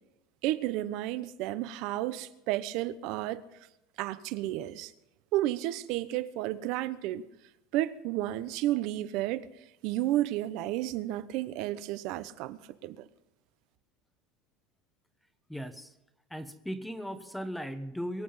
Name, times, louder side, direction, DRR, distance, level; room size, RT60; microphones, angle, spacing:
voice 1, 0.4-3.4 4.0-4.9 5.3-7.2 7.7-9.5 9.8-13.1, right 14 dB, 55° right, 0.9 m, -32 dB
voice 2, 15.5-15.9 16.3-18.2, equal, ahead, 1.0 m, -37 dB
23.5 x 8.5 x 5.6 m
cardioid pair, 165°, 0 cm